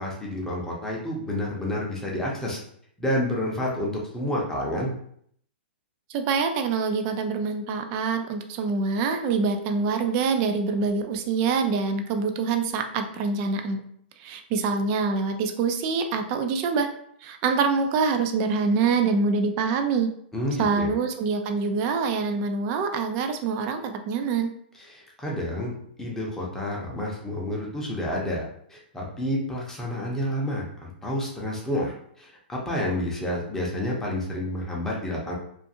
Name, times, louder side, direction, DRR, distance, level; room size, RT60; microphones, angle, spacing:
voice 1, 0.0-2.6 3.0-4.9 20.3-20.9 24.8-28.4 28.7-35.3, left 1 dB, 10° left, -3 dB, 0.6 m, -29 dB
voice 2, 6.1-13.8 14.2-16.9 17.2-20.1 20.6-24.5, right 4 dB, 35° right, 6 dB, 0.4 m, -25 dB
2.5 x 2.4 x 2.7 m, 0.67 s
hypercardioid pair, 140°, 6 cm